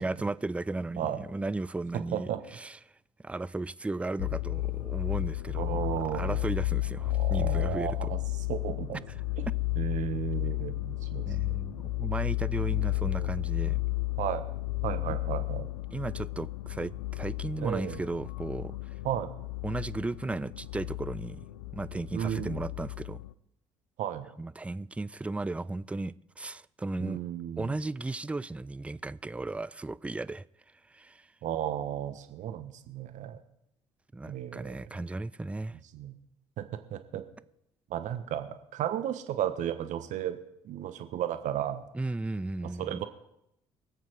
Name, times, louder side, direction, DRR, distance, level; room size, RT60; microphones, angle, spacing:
voice 1, 0.0-2.8 3.2-5.8 6.1-8.1 11.2-13.8 15.1-15.2 15.9-18.8 19.6-21.5 21.7-23.2 24.4-27.2 27.6-30.4 30.9-31.3 34.1-35.8 41.9-43.0, right 2 dB, 10° right, 0.4 m, -35 dB
voice 2, 2.1-2.4 5.5-6.5 7.1-9.0 9.4-9.5 9.8-11.6 12.7-13.3 14.2-14.5 14.8-15.7 17.6-18.0 19.0-19.3 22.1-22.6 24.0-24.3 27.0-27.8 31.4-33.4 34.2-35.0 35.9-36.2 36.6-37.2 37.9-40.4 40.6-41.9 42.6-43.1, right 10 dB, 55° right, 1.2 m, -34 dB
sound 1, 4.2-23.3, left 19 dB, 75° left, 0.6 m, -33 dB
23.5 x 8.1 x 4.7 m
figure-of-eight pair, 50°, 15 cm